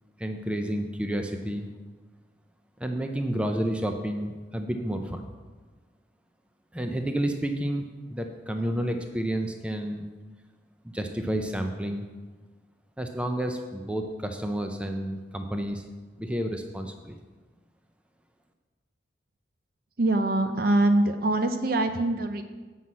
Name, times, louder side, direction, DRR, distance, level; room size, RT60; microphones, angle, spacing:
voice 1, 0.2-1.7 2.8-5.2 6.7-10.1 10.8-12.1 13.0-15.8 16.2-17.2, right 1 dB, 5° right, 5 dB, 0.5 m, -30 dB
voice 2, 20.0-22.4, right 2 dB, 50° right, 8 dB, 0.7 m, -23 dB
7.8 x 5.5 x 7.3 m, 1.3 s
head